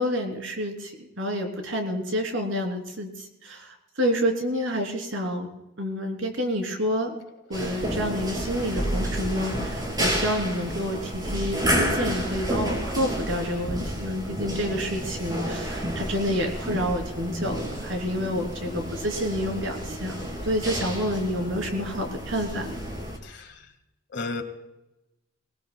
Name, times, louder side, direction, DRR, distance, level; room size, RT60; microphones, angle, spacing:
voice 1, 0.0-5.5 5.8-7.1 7.5-22.8, equal, 70° right, 3 dB, 3.2 m, -29 dB
sound 1, 7.5-23.2, equal, 20° right, 3.1 m, -30 dB
voice 2, 23.2-23.7 24.1-24.4, left 3 dB, 60° left, 6 dB, 1.8 m, -33 dB
23.0 x 18.0 x 2.3 m, 0.95 s
head